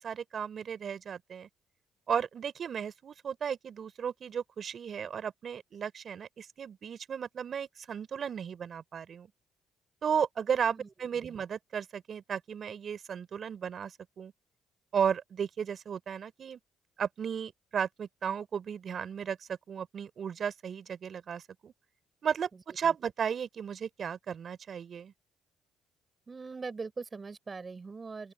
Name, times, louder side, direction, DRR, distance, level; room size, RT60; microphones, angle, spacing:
voice 1, 0.0-1.5 2.1-9.3 10.0-14.3 14.9-16.6 17.0-21.7 22.2-25.1, right 7 dB, 55° right, 4.0 m, -34 dB
voice 2, 26.3-28.3, right 4 dB, 35° right, 5.1 m, -41 dB
open air
supercardioid pair, 60°, 0 cm